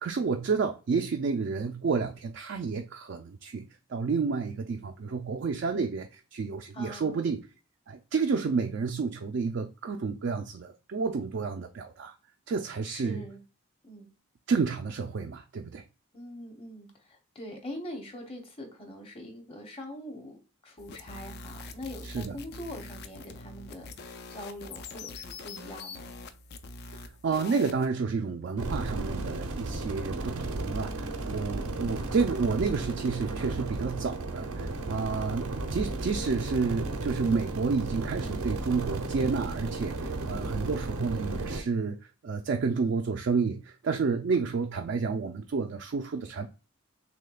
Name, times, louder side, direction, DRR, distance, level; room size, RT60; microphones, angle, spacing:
voice 1, 0.0-7.4 7.9-12.1 12.5-13.2 14.5-15.8 22.0-22.4 27.2-42.0 42.2-46.5, right 5 dB, 55° right, 0.3 m, -30 dB
voice 2, 6.7-7.2 12.8-13.4 13.8-14.1 16.1-20.4 20.6-26.1 31.6-31.9, left 1 dB, 25° left, 0.8 m, -43 dB
sound 1, 20.8-27.9, left 3 dB, 45° left, 0.3 m, -44 dB
sound 2, 28.6-41.6, right 2 dB, 85° right, 0.7 m, -34 dB
6.4 x 2.2 x 2.3 m
head